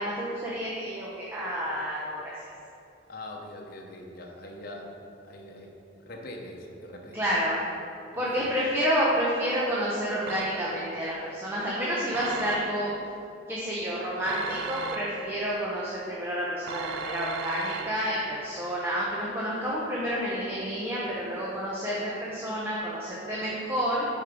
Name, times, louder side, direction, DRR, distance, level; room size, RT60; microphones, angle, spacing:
voice 1, 0.0-2.3 7.1-7.6 8.1-12.9 13.5-24.1, equal, 10° right, -6 dB, 0.9 m, -29 dB
voice 2, 3.1-5.0 5.2-7.2 8.1-8.5, left 1 dB, 50° left, 0 dB, 0.9 m, -43 dB
sound 1, 10.3-10.9 12.1-13.0 14.3-15.5 16.7-18.3, right 6 dB, 65° right, 0.4 m, -37 dB
9.0 x 4.6 x 4.9 m, 2.6 s
head